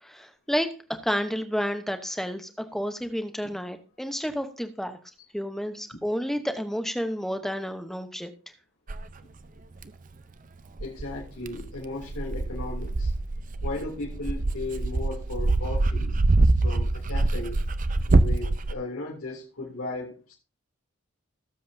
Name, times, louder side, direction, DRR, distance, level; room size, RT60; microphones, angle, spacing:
voice 1, 0.0-5.0 5.3-8.3, equal, ahead, 7 dB, 0.8 m, -30 dB
Dog, 8.9-9.0 9.8-9.9 10.8-18.7, right 2 dB, 35° right, 0.5 m, -24 dB
voice 2, 10.8-13.1 13.6-16.2 16.6-17.6 18.0-20.3, left 2 dB, 85° left, -4 dB, 3.1 m, -36 dB
18.0 x 7.6 x 2.7 m, 0.34 s
head